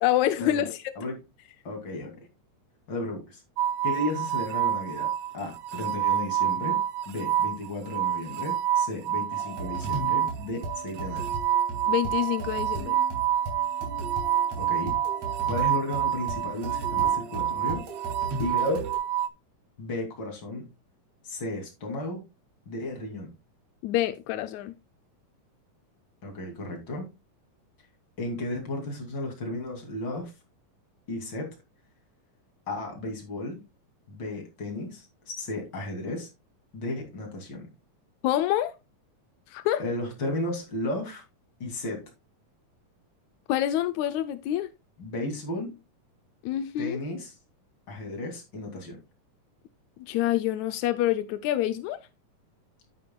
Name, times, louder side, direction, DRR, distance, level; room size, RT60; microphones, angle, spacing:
voice 1, 0.0-0.8 11.9-12.9 23.8-24.7 38.2-38.7 39.5-39.8 43.5-44.7 46.4-47.0 50.1-52.0, left 13 dB, 85° left, 1.6 m, -26 dB
voice 2, 1.6-2.2 2.9-3.4 3.8-6.8 7.1-11.2 14.6-15.0 15.5-17.8 18.4-18.8 19.8-20.7 21.2-22.2 22.7-23.3 26.2-27.1 28.2-30.3 31.1-31.5 32.7-33.6 34.1-35.1 35.4-36.3 36.7-37.7 39.8-41.2 41.6-42.0 45.0-45.7 46.8-47.3 47.9-49.0, left 1 dB, 35° left, 3.0 m, -34 dB
sound 1, 3.6-19.3, right 10 dB, 70° right, 2.0 m, -28 dB
sound 2, 9.3-19.0, right 2 dB, 50° right, 3.9 m, -37 dB
9.6 x 9.4 x 2.3 m
omnidirectional pair, 3.9 m